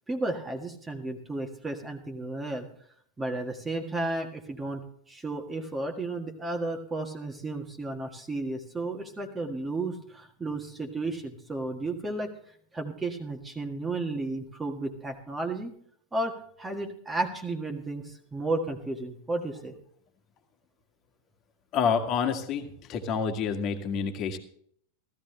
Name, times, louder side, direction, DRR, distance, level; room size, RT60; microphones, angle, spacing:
voice 1, 0.1-2.7 3.2-12.3 12.7-15.7 16.1-16.3 16.6-19.7, right 2 dB, 10° right, 3 dB, 1.7 m, -33 dB
voice 2, 21.7-24.4, left 6 dB, 35° left, 5 dB, 1.9 m, -28 dB
16.0 x 14.5 x 3.3 m, 0.63 s
figure-of-eight pair, 90°, 0 cm